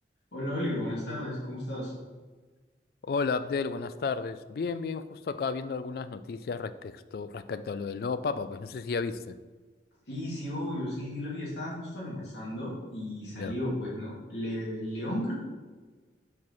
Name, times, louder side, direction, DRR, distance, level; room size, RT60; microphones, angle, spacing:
voice 1, 0.3-1.9 10.1-15.3, left 1 dB, 75° left, -6 dB, 2.1 m, -34 dB
voice 2, 3.0-9.3 13.3-13.6, left 4 dB, 55° left, 13 dB, 0.3 m, -33 dB
4.7 x 4.6 x 5.4 m, 1.4 s
head